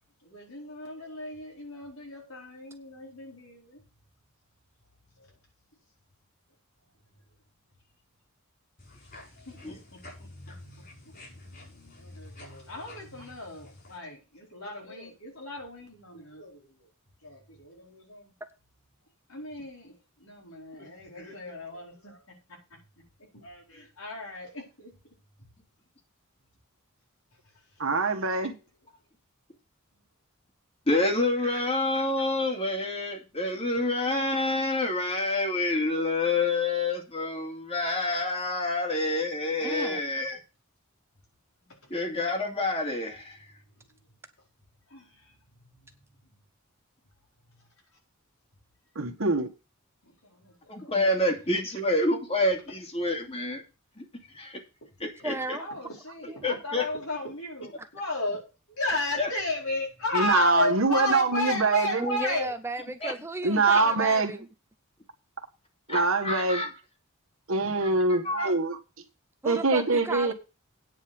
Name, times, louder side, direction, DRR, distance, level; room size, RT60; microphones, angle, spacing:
voice 1, 0.2-3.8 5.2-5.4 9.3-10.5 11.0-11.1 12.0-16.9 17.2-18.3 19.3-22.2 22.5-22.6 23.3-24.9 44.9-45.3 45.6-45.8 50.0-50.7 54.8-54.9 55.5-58.4 58.7-62.5, left 2 dB, 80° left, 4.6 m, -35 dB
sound 1, 8.8-14.0, left 1 dB, 45° left, 5.8 m, -48 dB
voice 2, 27.8-28.5 48.9-49.5 60.1-62.0 63.4-64.3 65.9-66.6 67.5-68.8 69.4-70.3, right 3 dB, 65° right, 1.6 m, -24 dB
voice 3, 30.9-40.4 41.9-43.4 50.7-53.6 54.0-54.1 54.3-54.6 55.0-55.6 56.4-56.8 59.2-59.3 63.0-63.1 65.9-66.7 68.1-68.5, left 2 dB, 30° left, 2.5 m, -28 dB
voice 4, 39.6-40.0 55.2-55.7 56.3-56.4 57.8-57.9 62.0-64.5 69.4-70.3, right 2 dB, 10° right, 0.6 m, -34 dB
9.3 x 5.4 x 8.0 m
head